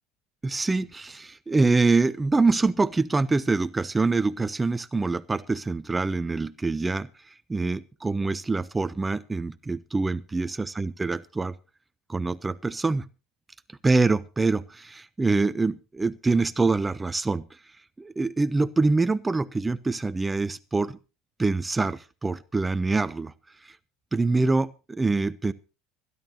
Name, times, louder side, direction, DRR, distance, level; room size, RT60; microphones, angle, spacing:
voice 1, 0.4-11.5 12.1-13.0 13.8-17.4 18.0-21.0 21.4-23.3 23.6-23.8 24.1-25.5, right 3 dB, 15° right, 16 dB, 0.6 m, -25 dB
25.5 x 11.0 x 2.8 m, 0.31 s
supercardioid pair, 105°, 0 cm